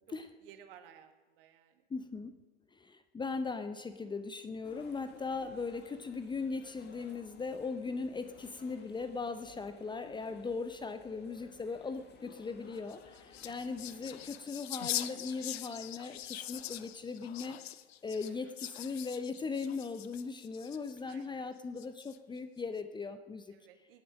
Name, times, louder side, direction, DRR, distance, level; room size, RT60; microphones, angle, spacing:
voice 1, 0.1-1.8 13.3-13.5 18.3-18.5 21.0-21.5 23.5-24.0, right 9 dB, 60° right, 7 dB, 1.8 m, -58 dB
voice 2, 1.9-2.3 2.7-17.6 18.0-23.5, left 4 dB, 15° left, 10 dB, 0.7 m, -39 dB
sound 1, 4.6-14.4, left 6 dB, 30° left, 1.8 m, -57 dB
sound 2, 12.8-21.2 21.8-22.4, left 13 dB, 70° left, 0.7 m, -43 dB
17.5 x 9.1 x 6.4 m, 1.2 s
hypercardioid pair, 90°, 32 cm